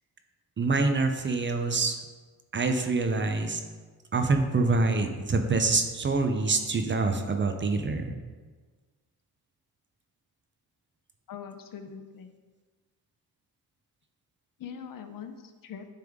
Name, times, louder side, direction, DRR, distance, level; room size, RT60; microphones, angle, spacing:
voice 1, 0.6-2.0 2.5-3.6 4.1-8.2, right 3 dB, 30° right, 6 dB, 0.6 m, -26 dB
voice 2, 11.3-12.3 14.6-15.9, left 7 dB, 60° left, 8 dB, 0.6 m, -42 dB
9.3 x 3.5 x 3.6 m, 1.4 s
cardioid pair, 100°, 38 cm